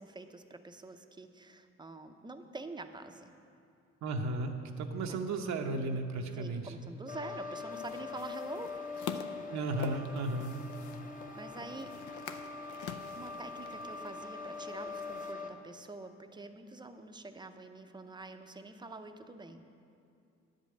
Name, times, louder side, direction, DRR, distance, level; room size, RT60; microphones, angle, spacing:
voice 1, 0.0-3.3 5.1-5.2 6.3-8.7 11.4-11.9 13.1-19.6, right 2 dB, 15° right, 7 dB, 0.6 m, -46 dB
voice 2, 4.0-6.7 9.5-10.5, right 2 dB, 65° right, 3 dB, 0.8 m, -34 dB
sound 1, 7.1-15.5, left 4 dB, 25° left, 0.8 m, -43 dB
sound 2, 7.7-15.3, left 7 dB, 75° left, 0.6 m, -47 dB
9.8 x 5.3 x 7.6 m, 2.5 s
cardioid pair, 90°, 30 cm